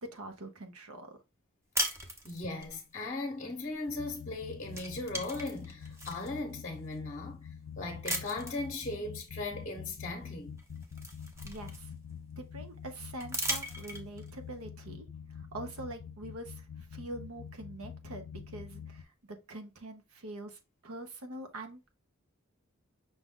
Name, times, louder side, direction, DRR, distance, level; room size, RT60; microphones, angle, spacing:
voice 1, 0.0-1.2 11.4-11.9 12.4-21.9, right 1 dB, 75° right, 0.9 m, -44 dB
sound 1, 1.7-2.7 4.1-4.4 4.7-6.3 6.9-7.0 8.0-8.7 10.1-10.2 10.6-12.1 13.2-14.3, right 1 dB, 15° right, 0.7 m, -37 dB
voice 2, 2.2-7.5 7.8-10.5, left 2 dB, 30° left, 0.8 m, -38 dB
sound 2, 3.9-19.0, left 7 dB, 75° left, 0.5 m, -46 dB
5.7 x 2.4 x 3.6 m
head